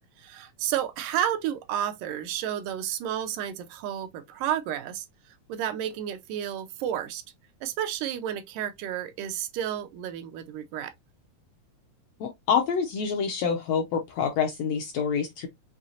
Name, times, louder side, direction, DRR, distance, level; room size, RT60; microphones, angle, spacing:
voice 1, 0.2-5.1 5.5-7.2 7.6-10.9, right 10 dB, 85° right, 2.3 m, -31 dB
voice 2, 12.2-15.5, left 6 dB, 80° left, 1.5 m, -27 dB
6.3 x 2.8 x 2.7 m
omnidirectional pair, 3.7 m